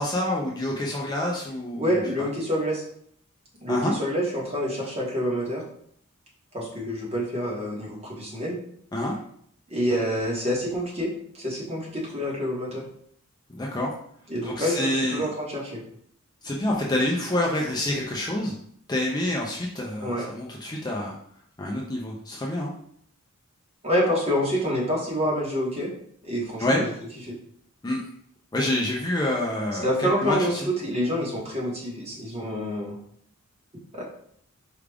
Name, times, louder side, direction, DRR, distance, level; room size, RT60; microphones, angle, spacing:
voice 1, 0.0-2.3 3.7-3.9 8.9-9.1 13.5-13.9 14.4-15.2 16.4-18.5 18.9-21.2 21.6-22.7 26.6-26.8 27.8-28.1 28.5-30.4, left 1 dB, 20° left, -2 dB, 0.5 m, -27 dB
voice 2, 1.7-2.8 3.6-5.6 6.5-8.6 9.7-12.9 14.3-15.8 20.0-20.3 23.8-25.9 26.2-26.9 27.3-27.4 29.8-33.0 33.9-34.0, equal, 30° right, -4 dB, 1.2 m, -27 dB
4.8 x 2.4 x 3.4 m, 0.64 s
head